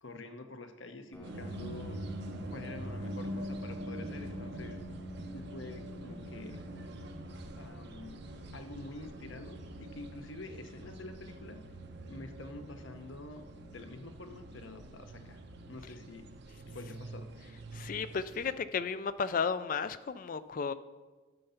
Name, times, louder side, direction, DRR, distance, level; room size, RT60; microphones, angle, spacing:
voice 1, 0.0-2.0 2.5-4.8 5.3-6.6 7.5-8.2 8.5-11.6 12.1-15.4 15.7-16.3 16.7-17.3, left 2 dB, 65° left, 7 dB, 0.9 m, -47 dB
Piano, 1.1-16.5, equal, 10° left, 0.8 m, -53 dB
sound 1, 1.2-18.5, right 1 dB, 55° right, 0.8 m, -44 dB
voice 2, 17.7-20.7, left 5 dB, 40° left, 14 dB, 0.3 m, -33 dB
10.5 x 6.6 x 5.7 m, 1.3 s
head